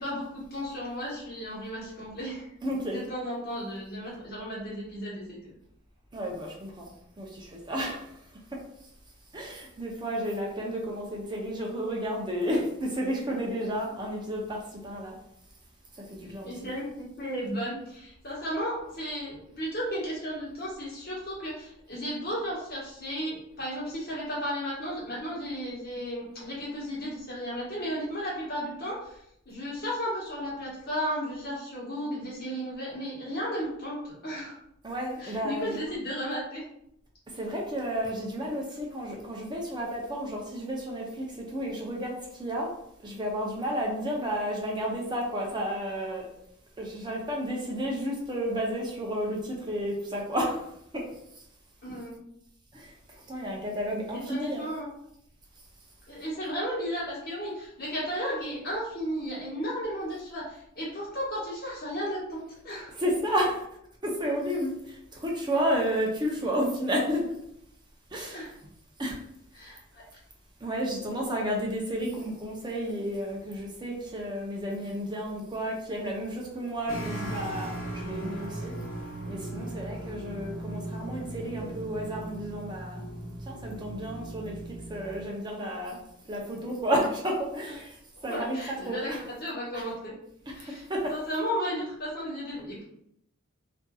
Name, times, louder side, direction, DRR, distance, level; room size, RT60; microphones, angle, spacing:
voice 1, 0.0-2.5 2.9-5.5 16.4-29.2 29.4-34.5 35.2-36.6 51.8-52.1 54.1-54.9 56.1-62.9 68.3-68.5 69.5-70.0 88.3-90.1 90.5-92.8, equal, 50° left, -7 dB, 1.3 m, -34 dB
voice 2, 2.6-3.0 6.1-6.9 7.2-8.0 8.5-8.6 9.3-15.2 16.1-16.5 34.8-35.8 37.3-42.7 43.0-46.3 46.8-50.6 50.9-51.0 52.7-52.9 53.3-54.6 62.9-63.6 64.0-67.2 68.1-68.5 69.0-69.2 70.6-77.8 78.0-78.7 79.3-83.0 83.5-84.6 84.9-86.0 86.3-88.0 88.2-89.2 89.7-89.9 90.9-91.2, equal, 20° right, -1 dB, 0.5 m, -31 dB
sound 1, 76.9-85.2, right 1 dB, 75° left, 0.9 m, -38 dB
2.7 x 2.5 x 2.3 m, 0.75 s
head